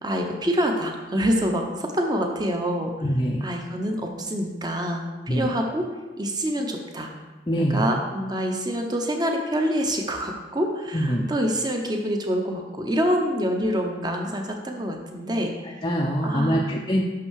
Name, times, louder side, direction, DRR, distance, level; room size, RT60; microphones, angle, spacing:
voice 1, 0.0-2.9 3.4-5.9 6.2-7.1 7.6-15.5 16.2-16.8, equal, 25° right, 3 dB, 0.9 m, -26 dB
voice 2, 3.0-3.5 5.3-5.5 7.5-7.8 10.9-11.3 15.6-17.0, equal, 25° left, -2 dB, 0.6 m, -24 dB
6.0 x 5.6 x 6.4 m, 1.3 s
head